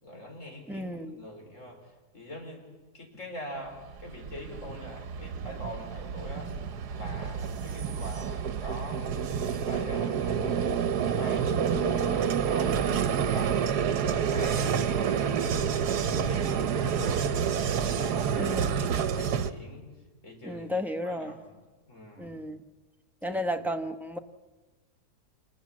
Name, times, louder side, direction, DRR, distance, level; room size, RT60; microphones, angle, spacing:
voice 1, 0.0-2.6 2.9-6.5 6.9-9.1 9.5-10.6 11.1-13.7 14.0-15.4 15.8-17.4 17.8-19.9 20.2-21.6 21.9-22.3 23.2-23.5, equal, 50° left, 2 dB, 4.9 m, -44 dB
voice 2, 0.7-1.2 18.4-18.8 20.4-21.4 22.2-22.6 23.2-24.2, equal, ahead, 5 dB, 0.8 m, -33 dB
Vehicle, 3.9-19.5, right 7 dB, 80° right, 1.5 m, -28 dB
27.0 x 20.0 x 7.5 m, 1.2 s
omnidirectional pair, 1.7 m